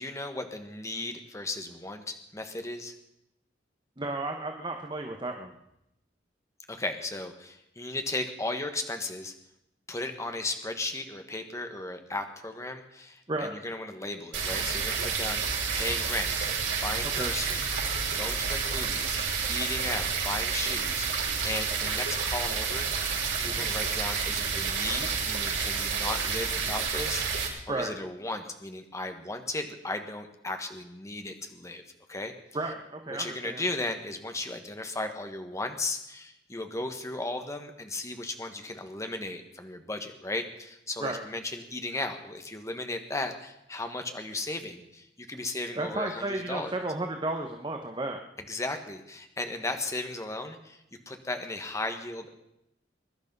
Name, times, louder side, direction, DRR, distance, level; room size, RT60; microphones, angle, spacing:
voice 1, 0.0-2.9 6.7-9.3 9.9-17.7 18.2-19.2 19.5-23.1 23.4-27.2 27.7-31.8 32.1-32.3 33.1-46.8 48.5-52.3, left 2 dB, 15° left, 6 dB, 1.4 m, -36 dB
voice 2, 4.0-5.5 13.3-13.6 17.2-17.3 23.4-23.7 27.7-27.9 32.5-33.6 41.0-41.2 45.7-48.2, right 2 dB, 25° right, 4 dB, 1.2 m, -33 dB
sound 1, 14.3-27.5, right 5 dB, 75° right, 5.5 m, -30 dB
22.0 x 11.5 x 5.5 m, 0.83 s
head